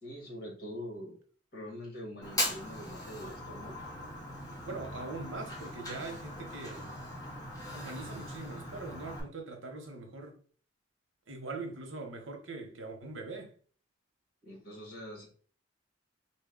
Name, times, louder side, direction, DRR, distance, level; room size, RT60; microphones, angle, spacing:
voice 1, 0.0-1.2 1.5-3.8 14.4-15.3, equal, 50° left, 1.7 m, -44 dB
Fire, 2.2-9.2, left 1 dB, 20° left, 1.1 m, -40 dB
voice 2, 4.6-6.9 7.7-10.4 11.3-13.5, right 3 dB, 80° right, 0.9 m, -42 dB
4.0 x 2.2 x 3.8 m
head